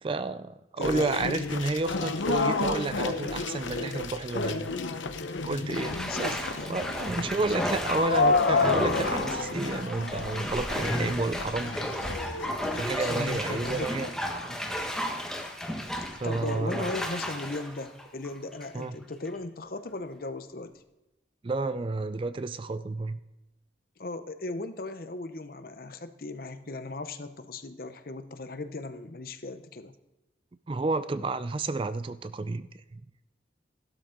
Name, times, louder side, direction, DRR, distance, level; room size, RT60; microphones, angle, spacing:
voice 1, 0.0-4.7 5.4-6.3 6.7-11.7 12.7-14.5 16.2-16.9 18.7-19.0 21.4-23.2 30.7-32.7 32.9-33.0, right 3 dB, 30° right, 13 dB, 0.3 m, -31 dB
sound 1, 0.8-13.9, left 4 dB, 90° left, 0.9 m, -31 dB
voice 2, 0.8-1.3 6.1-6.8 7.6-7.7 13.0-14.1 16.0-20.7 24.0-29.9, left 2 dB, 50° left, 10 dB, 0.7 m, -37 dB
Bathtub (filling or washing), 3.5-4.0 4.4-4.5 5.7-18.8 19.3-19.4, equal, 5° left, 1.2 m, -34 dB
15.0 x 12.0 x 3.8 m, 1.0 s
head